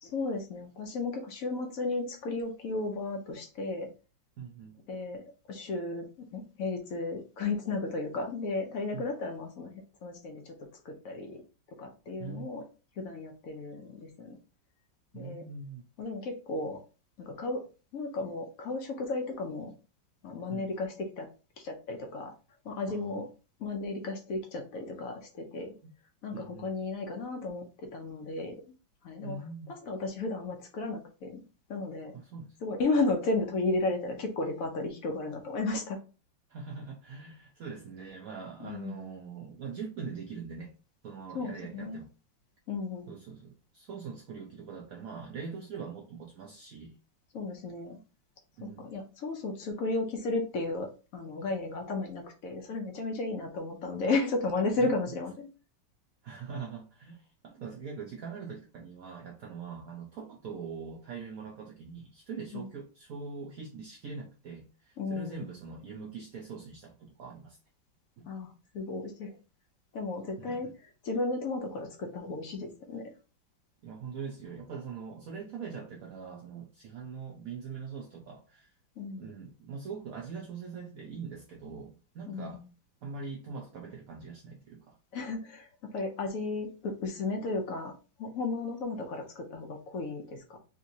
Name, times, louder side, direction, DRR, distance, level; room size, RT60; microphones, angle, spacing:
voice 1, 0.0-3.9 4.9-10.5 10.8-11.4 11.8-12.6 13.0-14.4 15.1-15.4 16.0-16.8 17.2-17.6 17.9-19.7 20.2-21.3 21.6-22.3 22.6-23.3 23.6-25.7 26.2-27.6 27.9-28.6 29.0-29.4 29.7-31.4 31.7-32.1 32.6-36.0 38.6-39.1 41.3-42.0 42.7-43.1 47.3-48.0 48.6-55.5 62.5-62.7 65.0-65.5 68.3-69.4 69.9-70.7 71.0-73.1 79.0-79.2 82.3-82.7 85.1-87.9 88.2-90.6, left 3 dB, 70° left, 0.8 m, -34 dB
voice 2, 4.4-4.8 8.9-9.0 12.2-12.5 15.1-15.8 20.5-20.7 22.9-23.2 26.3-26.8 29.2-29.8 32.1-32.6 36.5-40.7 41.0-42.1 43.1-47.0 48.6-48.9 54.8-54.9 56.2-67.6 68.2-68.3 70.4-70.7 73.8-78.7 79.2-82.6 83.0-85.0, right 5 dB, 75° right, 0.8 m, -42 dB
3.6 x 2.8 x 2.7 m
omnidirectional pair, 2.1 m